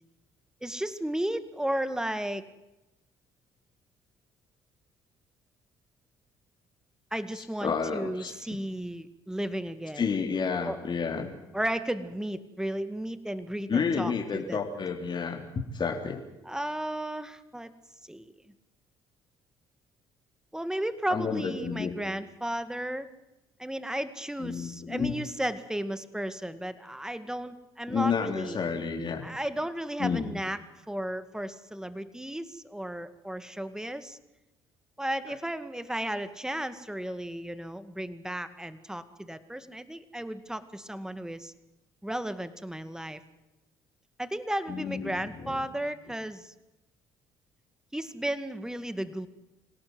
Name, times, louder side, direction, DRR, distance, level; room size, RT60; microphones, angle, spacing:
voice 1, 0.6-2.5 7.1-10.1 10.7-10.8 11.5-14.6 16.5-17.7 18.1-18.3 20.5-23.1 23.6-28.6 29.2-30.6 30.9-34.2 35.0-41.5 42.0-43.2 44.2-46.5 47.9-49.3, right 1 dB, 5° right, 12 dB, 2.1 m, -34 dB
voice 2, 7.4-8.3 10.0-11.3 13.7-16.2 21.1-21.9 24.4-25.1 27.9-29.2 30.0-30.2 44.7-45.6, left 5 dB, 40° left, 2 dB, 3.6 m, -30 dB
26.5 x 17.5 x 8.0 m, 0.97 s
hypercardioid pair, 60°, 12 cm